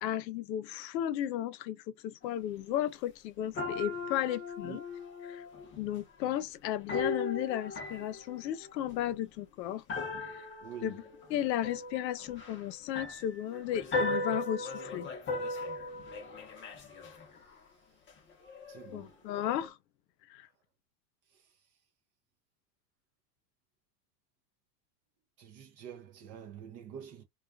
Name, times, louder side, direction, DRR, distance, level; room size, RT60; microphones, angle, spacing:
voice 1, 0.0-4.8 5.2-5.4 5.8-9.8 10.2-10.5 10.8-11.0 11.3-15.1 18.9-19.8 20.3-20.5, left 11 dB, 90° left, 0.6 m, -34 dB
sound 1, 2.2-2.3 3.5-5.9 6.9-9.2 9.9-17.5 18.1-19.0 19.3-19.7, left 2 dB, 25° left, 0.6 m, -38 dB
voice 2, 10.6-11.0 18.7-19.1 25.4-27.2, right 8 dB, 35° right, 0.4 m, -46 dB
2.3 x 2.3 x 2.3 m
supercardioid pair, 110°, 49 cm